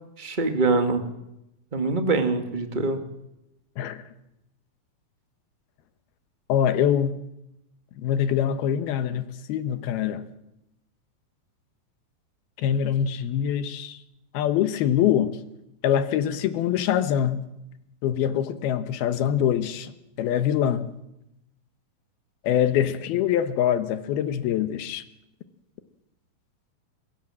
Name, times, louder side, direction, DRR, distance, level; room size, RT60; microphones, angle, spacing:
voice 1, 0.2-1.0 1.7-3.0, right 3 dB, 35° right, 0.7 m, -24 dB
voice 2, 6.5-7.2 8.0-10.2 12.6-14.0 14.3-15.3 15.8-17.5 18.0-20.9 22.4-25.0, left 9 dB, 85° left, 3.2 m, -24 dB
29.5 x 16.5 x 7.6 m
omnidirectional pair, 4.3 m